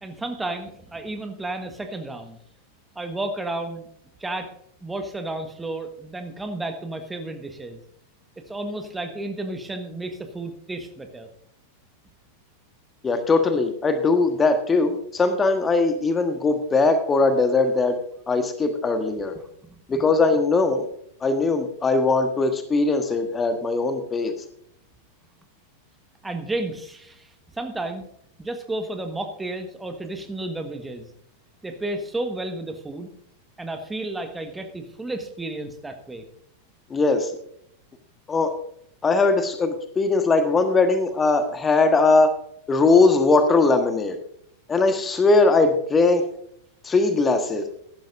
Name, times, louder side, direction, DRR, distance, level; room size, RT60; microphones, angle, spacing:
voice 1, 0.0-2.4 2.9-3.9 4.2-4.5 4.8-7.8 8.5-11.3 19.7-20.0 26.2-28.0 28.4-31.1 31.6-33.1 33.6-36.2, right 2 dB, 10° right, 6 dB, 1.4 m, -32 dB
voice 2, 13.0-18.0 18.3-19.3 19.9-20.9 21.2-24.3 36.9-37.3 38.3-38.5 39.0-42.3 42.7-44.2 44.7-46.2 46.8-47.6, left 3 dB, 20° left, 8 dB, 1.3 m, -20 dB
15.0 x 12.0 x 2.6 m, 0.69 s
figure-of-eight pair, 90°, 0 cm